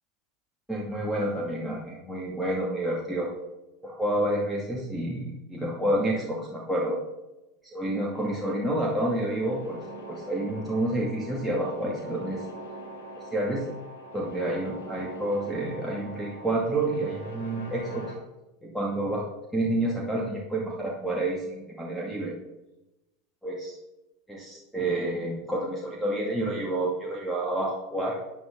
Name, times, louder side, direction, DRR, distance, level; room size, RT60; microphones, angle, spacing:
voice 1, 0.7-3.3 3.8-7.0 7.6-9.8 10.1-12.5 13.2-13.7 14.1-18.0 18.6-19.2 19.5-22.4 23.4-23.8 24.3-28.2, right 1 dB, 5° right, -4 dB, 2.2 m, -29 dB
sound 1, 8.1-18.1, right 1 dB, 70° left, 4.0 m, -43 dB
12.5 x 9.6 x 3.8 m, 0.99 s
figure-of-eight pair, 80°, 0 cm